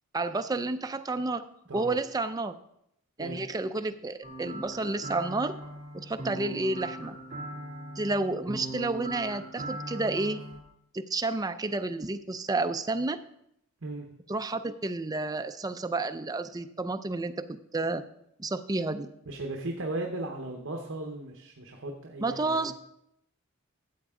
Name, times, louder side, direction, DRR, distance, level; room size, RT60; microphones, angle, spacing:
voice 1, 0.1-1.5 1.7-2.5 3.2-5.6 5.9-7.2 8.0-10.4 10.9-13.2 14.3-18.0 18.4-19.1 22.2-22.7, right 2 dB, 15° right, 9 dB, 0.4 m, -30 dB
sound 1, 4.2-10.6, right 1 dB, 30° right, 2.3 m, -40 dB
voice 2, 19.3-22.7, right 2 dB, 60° right, 2 dB, 1.1 m, -36 dB
13.0 x 7.9 x 3.7 m, 0.77 s
head